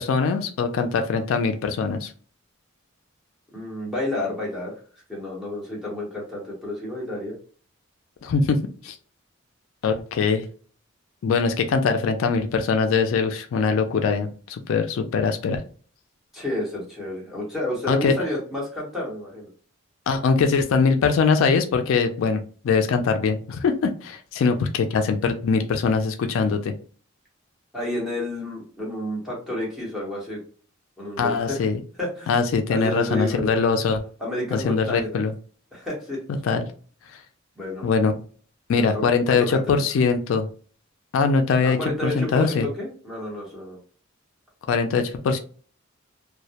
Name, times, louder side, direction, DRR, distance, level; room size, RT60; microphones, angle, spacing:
voice 1, 0.0-2.1 8.2-9.0 9.8-10.5 11.2-15.6 17.9-18.1 20.1-26.7 31.2-31.8 32.3-34.0 34.5-35.3 36.4-36.6 37.1-37.2 37.8-38.1 38.7-40.5 41.1-41.8 42.0-42.7 44.7-45.4, left 5 dB, 70° left, 6 dB, 0.3 m, -22 dB
voice 2, 3.5-4.8 5.1-7.4 16.3-19.5 27.7-30.4 31.0-31.6 32.0-32.3 32.7-33.5 34.2-35.1 35.7-36.2 37.6-37.9 38.7-39.6 41.6-43.8, left 1 dB, ahead, -5 dB, 0.9 m, -30 dB
2.2 x 2.0 x 2.7 m, 0.42 s
head